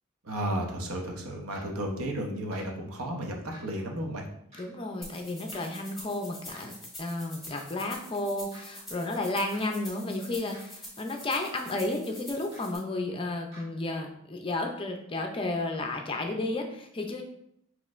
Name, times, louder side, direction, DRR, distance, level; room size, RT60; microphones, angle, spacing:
voice 1, 0.3-3.3 3.6-4.3, right 1 dB, 85° right, 1 dB, 0.8 m, -33 dB
sound 1, 1.5-1.6 2.5-2.6 3.5-3.6 4.5-4.6 5.5-5.6 6.5-6.6 7.5-7.6 8.5-8.6 9.5-9.6 10.5-10.6 11.5-11.6 12.5-12.6 13.5-13.6, equal, 30° right, 1.6 m, -49 dB
voice 2, 4.6-17.2, left 2 dB, 25° left, 3 dB, 0.4 m, -32 dB
sound 2, 5.0-12.8, left 1 dB, ahead, 1.3 m, -46 dB
6.1 x 3.0 x 2.5 m, 0.75 s
head